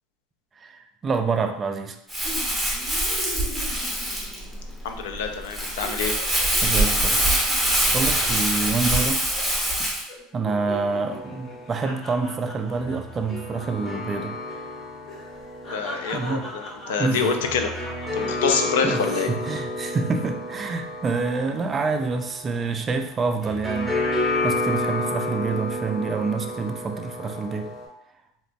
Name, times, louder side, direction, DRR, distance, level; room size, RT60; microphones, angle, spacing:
voice 1, 0.6-2.0 6.6-7.3 7.9-9.2 10.3-14.4 16.1-16.5 17.0-17.3 18.8-23.9 24.4-27.7, right 4 dB, 30° right, 6 dB, 0.3 m, -27 dB
Crumpling crinkling, 2.1-10.0, right 1 dB, ahead, 0.8 m, -24 dB
sound 1, 2.2-4.8 5.1-5.3 5.6-9.0 9.4-9.8 10.1-14.2 14.4-14.6 15.1-19.1 19.6-20.1, left 1 dB, 45° left, 0.9 m, -41 dB
voice 2, 4.8-6.1 15.7-17.7 18.1-19.3, left 5 dB, 85° left, 5 dB, 0.3 m, -26 dB
sound 2, 10.5-27.9, left 2 dB, 30° left, 1.2 m, -31 dB
2.8 x 2.5 x 2.2 m, 0.75 s
supercardioid pair, 110°, 0 cm